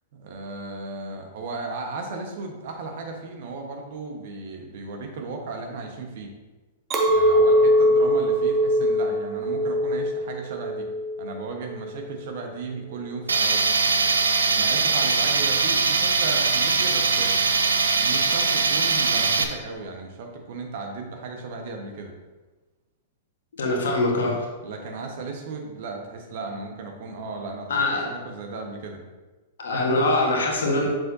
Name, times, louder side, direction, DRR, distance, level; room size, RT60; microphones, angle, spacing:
voice 1, 0.1-6.3 7.1-10.9 11.2-13.6 14.5-17.3 17.9-22.1 24.6-27.7 28.0-29.0, right 3 dB, 55° right, 2 dB, 1.2 m, -35 dB
Chink clink, 6.9-12.3, equal, 25° right, 0.9 m, -22 dB
Tools, 13.3-19.4, right 4 dB, 80° right, 0.5 m, -21 dB
voice 2, 23.6-24.4 27.7-28.1 29.6-30.9, left 2 dB, 70° left, 0 dB, 1.4 m, -23 dB
7.2 x 6.3 x 2.7 m, 1.2 s
figure-of-eight pair, 105°, 0 cm